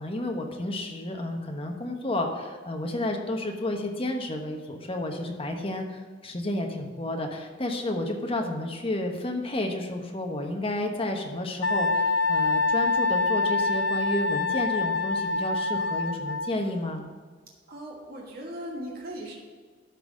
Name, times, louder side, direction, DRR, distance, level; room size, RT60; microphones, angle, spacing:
voice 1, 0.0-17.1, left 1 dB, 30° left, 2 dB, 1.1 m, -31 dB
Wind instrument woodwind instrument, 11.6-16.6, left 3 dB, 60° left, 0.5 m, -25 dB
voice 2, 17.7-19.3, equal, 50° right, -3 dB, 2.3 m, -38 dB
12.5 x 4.1 x 6.3 m, 1.5 s
head